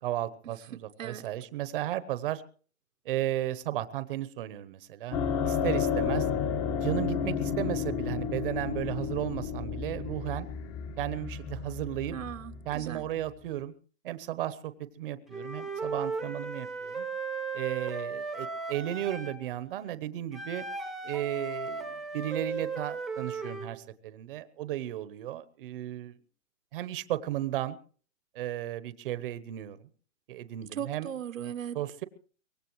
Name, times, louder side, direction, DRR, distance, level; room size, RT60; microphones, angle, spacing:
voice 1, 0.0-2.4 3.0-5.2 5.4-6.3 6.8-10.5 11.0-12.2 12.6-13.7 14.0-17.1 17.5-20.6 21.0-26.1 26.7-27.8 28.3-29.9 30.3-31.1 31.7-32.0, right 13 dB, 45° right, 1.0 m, -34 dB
sound 1, 5.1-13.5, left 7 dB, 30° left, 1.6 m, -32 dB
voice 2, 12.1-13.0 30.8-31.8, right 9 dB, 85° right, 1.2 m, -38 dB
Wind instrument woodwind instrument, 15.3-19.4 20.3-23.7, right 4 dB, ahead, 1.1 m, -36 dB
23.5 x 19.0 x 3.1 m
hypercardioid pair, 155°, 39 cm